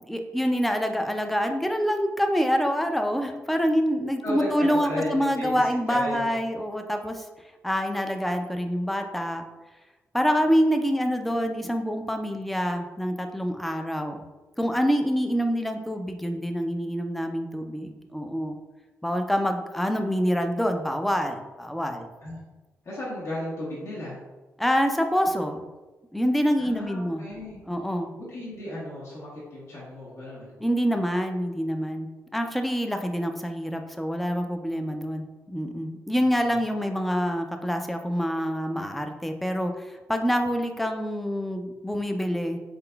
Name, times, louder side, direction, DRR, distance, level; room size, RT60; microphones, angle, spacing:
voice 1, 0.1-7.2 7.6-9.4 10.1-14.2 14.6-18.6 19.0-22.1 24.6-25.7 26.1-27.2 27.7-28.1 30.6-42.6, equal, ahead, 5 dB, 0.3 m, -26 dB
voice 2, 4.2-5.6 5.9-6.3 22.2-22.4 22.8-24.2 26.6-27.6 28.1-30.5 36.4-36.5, left 1 dB, 65° left, -7 dB, 1.1 m, -34 dB
3.8 x 3.7 x 2.2 m, 1.2 s
cardioid pair, 100°, 5 cm